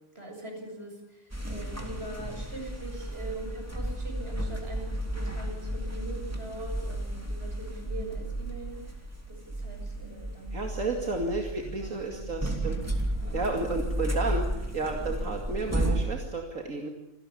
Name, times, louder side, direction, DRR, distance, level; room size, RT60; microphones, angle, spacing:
voice 1, 0.2-10.6 11.0-11.1 11.6-12.3, right 1 dB, 50° right, 2 dB, 7.4 m, -42 dB
sound 1, 1.3-16.1, right 1 dB, 10° right, 3.0 m, -33 dB
voice 2, 10.5-16.9, right 2 dB, 75° right, 2 dB, 2.8 m, -32 dB
27.0 x 17.5 x 8.6 m, 0.85 s
omnidirectional pair, 1.4 m